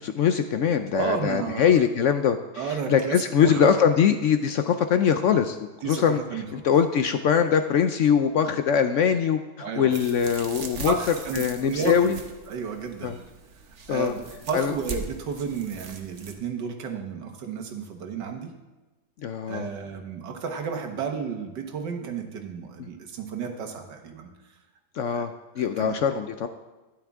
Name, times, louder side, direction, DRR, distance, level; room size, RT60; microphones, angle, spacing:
voice 1, 0.0-10.9 11.3-12.2 13.0-13.2 13.9-14.1 14.5-14.7 19.2-19.7 22.8-22.9 24.9-26.5, left 7 dB, 70° left, 8 dB, 0.7 m, -23 dB
voice 2, 0.9-1.8 2.5-3.7 5.8-6.6 9.6-9.9 10.9-12.2 12.5-13.1 13.9-18.5 19.5-24.3 25.1-25.3 25.6-25.9, right 6 dB, 85° right, 4 dB, 1.9 m, -32 dB
sound 1, 9.9-16.3, right 4 dB, 50° right, 1.2 m, -40 dB
12.5 x 11.0 x 3.6 m, 1.2 s
omnidirectional pair, 1.8 m